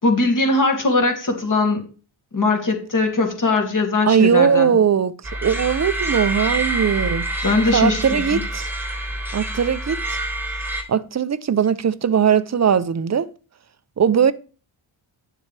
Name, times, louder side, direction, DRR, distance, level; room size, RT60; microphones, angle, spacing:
voice 1, 0.0-1.8 2.3-4.8 7.4-8.4, left 3 dB, 40° left, 2.8 m, -20 dB
voice 2, 4.1-5.1 5.4-7.4 7.7-8.7 9.3-10.2 10.9-13.3 14.0-14.3, right 7 dB, 35° right, 0.6 m, -19 dB
sound 1, 5.2-10.8, right 1 dB, 5° right, 1.8 m, -26 dB
11.0 x 7.2 x 3.4 m
cardioid pair, 90°, 50 cm